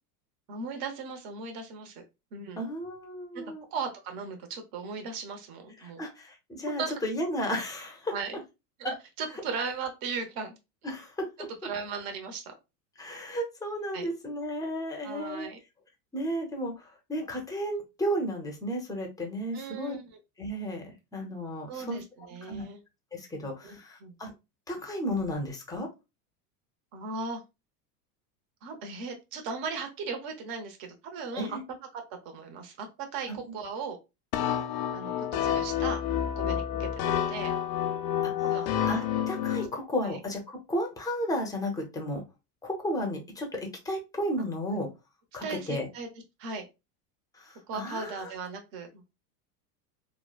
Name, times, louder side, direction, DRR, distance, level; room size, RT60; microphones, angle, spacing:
voice 1, 0.5-2.0 2.3-2.6 3.3-6.1 6.6-6.9 8.1-8.4 8.8-10.6 11.6-12.5 13.9-14.1 15.0-15.6 19.5-20.2 21.7-22.8 23.6-24.1 26.9-27.4 28.6-31.6 31.9-34.0 34.9-36.0 36.4-37.5 38.4-38.7 40.0-40.2 45.4-46.1 46.4-46.7 47.7-49.0, right 5 dB, 50° right, 5 dB, 0.9 m, -37 dB
voice 2, 2.5-3.6 5.8-8.1 8.8-8.9 10.8-11.3 13.0-15.5 16.1-20.0 20.4-22.0 22.4-22.6 23.1-24.3 24.7-25.9 31.3-31.6 33.3-33.4 38.2-38.3 38.9-42.2 42.6-44.9 45.3-45.9 47.3-48.3, equal, 10° left, 2 dB, 0.6 m, -33 dB
sound 1, 34.3-39.7, left 10 dB, 70° left, 0.6 m, -29 dB
3.1 x 2.1 x 2.3 m, 0.25 s
supercardioid pair, 115°, 45 cm